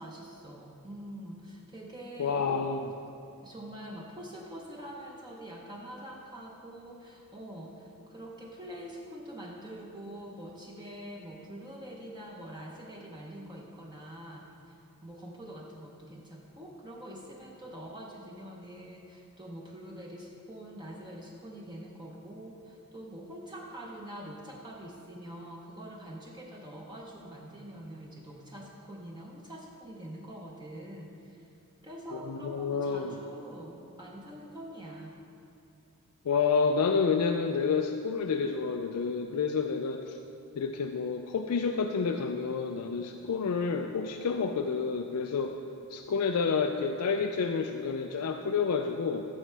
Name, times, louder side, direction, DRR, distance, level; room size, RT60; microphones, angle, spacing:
voice 1, 0.0-2.9 3.4-31.5 31.8-35.1, right 1 dB, 20° right, -2 dB, 0.7 m, -45 dB
voice 2, 2.2-2.9 32.1-33.2 36.2-40.2 40.6-45.5 45.9-49.3, left 5 dB, 85° left, 5 dB, 0.4 m, -29 dB
14.0 x 6.4 x 3.4 m, 2.7 s
head